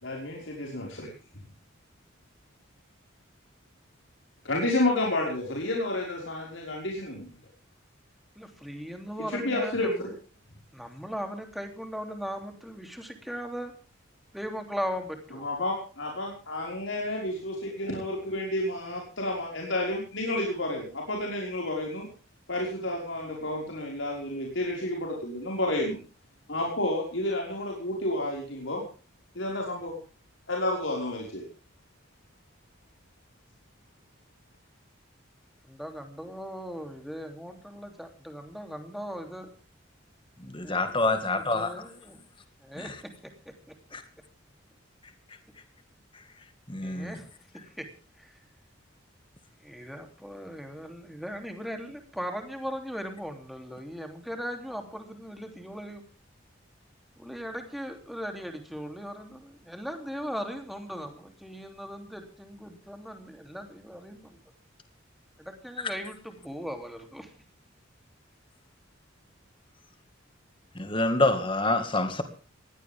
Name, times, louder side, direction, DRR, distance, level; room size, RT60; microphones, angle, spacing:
voice 1, 0.0-1.1 4.4-7.3 9.3-10.1 15.4-22.1 22.5-26.0 26.5-28.8 29.4-29.9 30.5-31.4, left 1 dB, 75° left, 5.5 m, -30 dB
voice 2, 8.3-10.1 10.7-13.7 14.3-15.5 35.6-39.5 40.6-42.2 42.6-43.8 46.7-47.3 47.5-47.9 48.2-48.4 49.6-56.0 57.2-64.4 65.4-67.3, equal, ahead, 3.2 m, -38 dB
voice 3, 40.4-41.7 42.8-42.9 43.9-44.0 46.7-47.1 70.8-72.2, left 2 dB, 25° left, 2.0 m, -26 dB
20.5 x 17.0 x 3.6 m
head